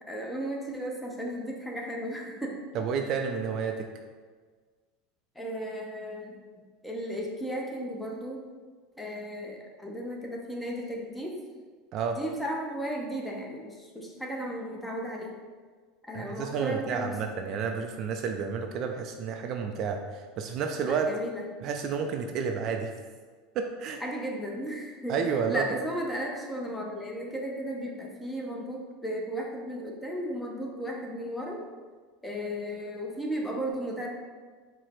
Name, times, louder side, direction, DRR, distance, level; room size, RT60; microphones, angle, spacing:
voice 1, 0.1-2.6 5.4-6.4 6.8-8.4 9.0-11.4 12.2-15.4 16.1-17.2 20.8-21.4 24.0-31.6 32.2-34.1, equal, 5° left, -1 dB, 0.6 m, -35 dB
voice 2, 2.7-3.8 11.9-12.2 16.1-21.1 21.6-22.9 23.6-24.0 25.1-25.8, right 6 dB, 45° right, 4 dB, 0.3 m, -30 dB
4.6 x 2.0 x 4.3 m, 1.5 s
supercardioid pair, 135°, 0 cm